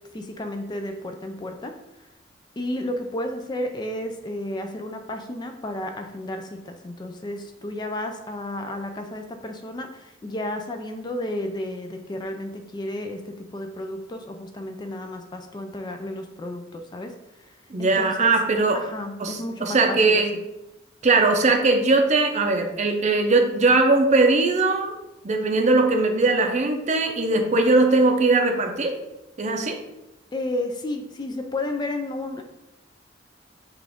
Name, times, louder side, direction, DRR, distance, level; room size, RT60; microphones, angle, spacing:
voice 1, 0.1-1.7 2.6-17.5 17.8-18.3 18.7-20.2 30.3-32.4, left 1 dB, 25° left, 5 dB, 0.3 m, -32 dB
voice 2, 17.7-18.8 19.2-20.3 21.0-24.9 25.2-29.0 29.4-29.8, right 3 dB, 40° right, 4 dB, 0.5 m, -20 dB
5.8 x 2.4 x 3.5 m, 0.92 s
head